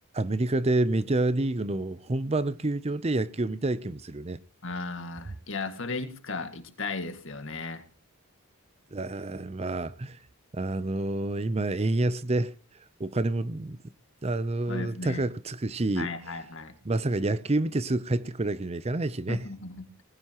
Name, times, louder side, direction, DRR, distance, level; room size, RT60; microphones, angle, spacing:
voice 1, 0.1-4.4 8.9-10.2 10.5-12.5 13.0-13.8 14.2-16.1 16.8-19.4, right 2 dB, 30° right, 0.6 m, -28 dB
voice 2, 4.6-7.8 14.7-15.3 16.0-16.8 19.3-19.9, left 3 dB, 60° left, 2.1 m, -35 dB
20.0 x 15.5 x 3.0 m
head